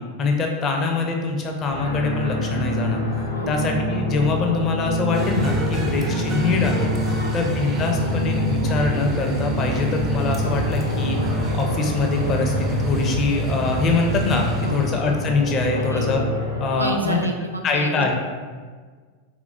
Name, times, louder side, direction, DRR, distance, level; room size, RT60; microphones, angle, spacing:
voice 1, 0.2-3.0 3.5-16.2 16.6-17.2 17.6-18.1, left 4 dB, 30° left, 2 dB, 0.5 m, -23 dB
sound 1, 1.7-16.7, left 1 dB, 85° left, 0.6 m, -27 dB
sound 2, 5.1-15.3, right 2 dB, 25° right, 0.5 m, -28 dB
voice 2, 15.8-16.1 16.8-18.1, right 1 dB, 85° right, 3 dB, 0.3 m, -29 dB
3.6 x 3.3 x 2.5 m, 1.6 s
figure-of-eight pair, 90°, 0 cm